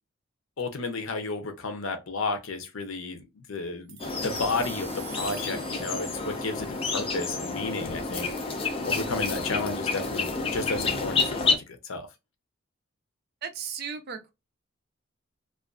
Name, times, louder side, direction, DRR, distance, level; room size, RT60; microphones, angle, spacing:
voice 1, 0.6-4.0 4.2-8.3 8.5-12.1, left 3 dB, 75° left, 0.6 m, -32 dB
sound 1, 3.9-8.4, right 5 dB, 85° right, 0.7 m, -47 dB
sound 2, 4.0-11.6, left 4 dB, 30° left, 0.4 m, -29 dB
voice 2, 13.4-14.3, right 7 dB, 50° right, 0.5 m, -35 dB
2.5 x 2.3 x 2.2 m
head